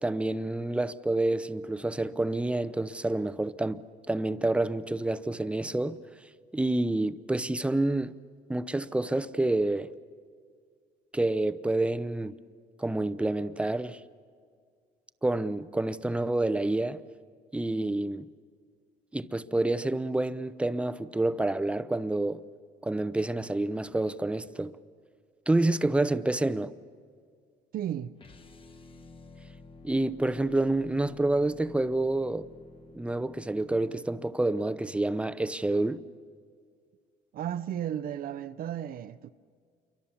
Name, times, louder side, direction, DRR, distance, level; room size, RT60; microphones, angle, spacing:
voice 1, 0.0-6.0 6.5-8.2 8.5-9.9 11.1-12.4 12.8-14.0 15.2-17.0 17.5-18.3 19.1-22.4 22.8-24.8 25.5-26.7 29.8-32.5 32.9-36.0, right 2 dB, 5° right, 0.6 m, -28 dB
voice 2, 27.7-28.2 37.3-39.3, right 10 dB, 60° right, 0.7 m, -34 dB
sound 1, 28.2-34.3, left 3 dB, 30° left, 1.3 m, -51 dB
28.0 x 23.5 x 7.1 m
cardioid pair, 110°, 17 cm